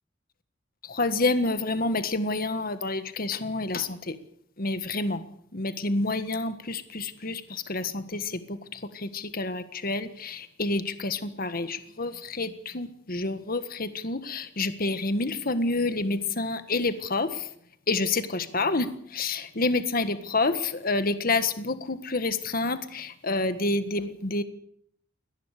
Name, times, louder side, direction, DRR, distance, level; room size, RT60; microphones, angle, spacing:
voice 1, 1.0-4.1 4.6-5.2 5.5-7.4 7.7-8.0 9.4-12.1 12.4-12.5 12.7-17.3 17.9-18.9 19.2-20.5 20.8-24.4, left 3 dB, 50° left, 11 dB, 1.6 m, -28 dB
22.5 x 18.5 x 6.7 m, 0.68 s
head